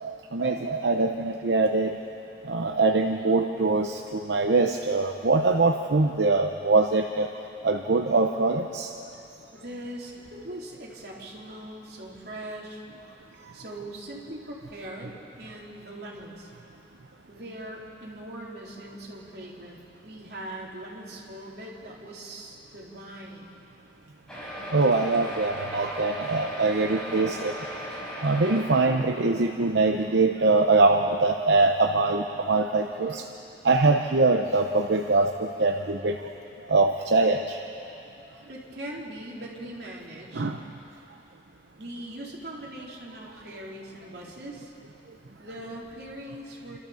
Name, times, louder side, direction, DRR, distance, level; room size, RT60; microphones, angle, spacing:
voice 1, 0.0-1.9 2.4-7.3 7.6-8.9 24.7-27.5 28.2-33.2 33.6-36.2 36.7-37.6 40.3-40.6, right 3 dB, 85° right, 3 dB, 0.8 m, -23 dB
voice 2, 9.5-12.8 13.5-16.5 17.3-23.6 38.5-40.5 41.8-44.7 45.4-46.8, right 1 dB, 60° right, -3 dB, 3.5 m, -41 dB
sound 1, 24.3-29.7 30.4-30.5 30.7-30.8 31.2-31.3, equal, 5° left, 4.2 m, -37 dB
29.0 x 13.0 x 7.1 m, 2.9 s
head